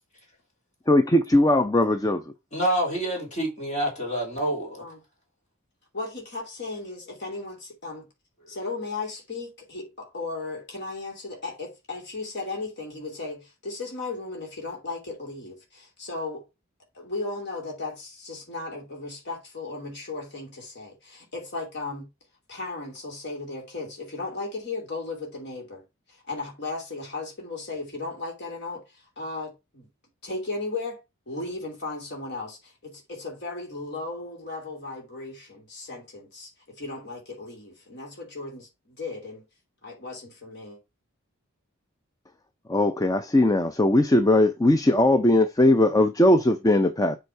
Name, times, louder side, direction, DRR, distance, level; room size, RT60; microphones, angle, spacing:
voice 1, 0.9-2.2 42.7-47.2, left 1 dB, 15° left, 0.5 m, -19 dB
voice 2, 2.5-4.8 8.4-8.5, right 1 dB, 35° left, 2.9 m, -27 dB
voice 3, 5.9-8.0 8.5-16.4 16.9-22.1 22.5-25.8 26.1-29.9 30.2-31.0 31.3-39.4 39.8-40.8, left 3 dB, 55° left, 2.9 m, -36 dB
8.1 x 4.0 x 4.5 m
head